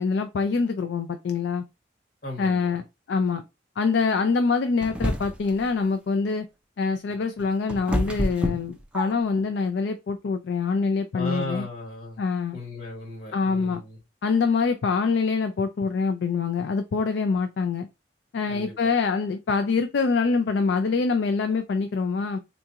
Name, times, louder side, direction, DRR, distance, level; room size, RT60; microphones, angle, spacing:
voice 1, 0.0-1.7 2.4-3.4 3.8-6.5 6.8-11.7 12.2-12.6 13.3-13.8 14.2-17.9 18.3-22.4, left 4 dB, 75° left, 0.4 m, -25 dB
voice 2, 2.2-2.8 11.1-12.2 12.5-14.0 18.5-18.9, left 1 dB, 60° left, 1.6 m, -36 dB
sound 1, 4.8-5.6 7.1-9.4, equal, 5° right, 0.5 m, -28 dB
3.9 x 2.3 x 2.7 m
head